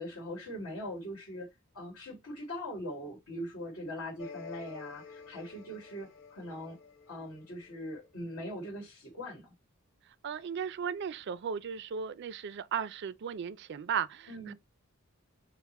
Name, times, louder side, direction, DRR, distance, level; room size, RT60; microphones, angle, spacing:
voice 1, 0.0-1.5 1.7-6.8 7.1-9.5 14.3-14.5, equal, 85° left, 1.7 m, -41 dB
sound 1, 4.2-8.1, left 5 dB, 60° left, 1.2 m, -49 dB
voice 2, 10.2-14.5, right 7 dB, 55° right, 0.3 m, -36 dB
5.6 x 2.1 x 4.1 m
head